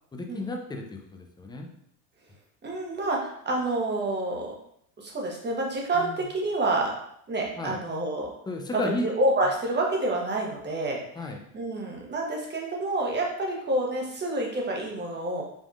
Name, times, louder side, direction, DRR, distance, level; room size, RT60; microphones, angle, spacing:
voice 1, 0.1-1.7 5.9-6.2 7.6-7.8 8.5-9.1 11.2-11.4, left 2 dB, 10° left, 3 dB, 0.5 m, -33 dB
voice 2, 2.6-4.5 5.0-6.9 7.3-8.3 8.7-11.3 11.5-15.4, right 2 dB, 20° right, -1 dB, 1.1 m, -28 dB
5.3 x 3.5 x 2.4 m, 0.70 s
supercardioid pair, 105°, 47 cm